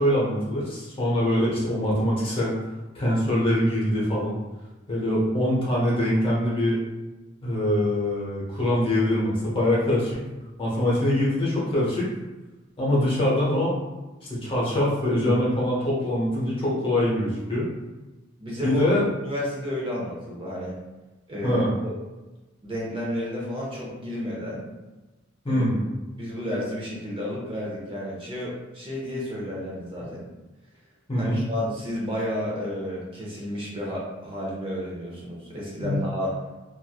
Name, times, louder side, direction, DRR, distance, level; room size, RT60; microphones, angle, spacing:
voice 1, 0.0-2.5 2.9-4.3 4.9-6.8 7.4-10.2 10.6-12.1 12.8-13.7 14.2-17.7 18.6-19.1 21.4-21.7 25.4-25.8 31.1-31.4 35.8-36.0, left 1 dB, 25° left, -6 dB, 0.9 m, -23 dB
voice 2, 18.4-18.9 19.2-20.7 21.3-21.9 22.6-24.6 25.5-25.6 26.1-30.2 31.2-36.3, equal, 25° right, -5 dB, 0.7 m, -31 dB
3.1 x 2.5 x 2.3 m, 1.1 s
head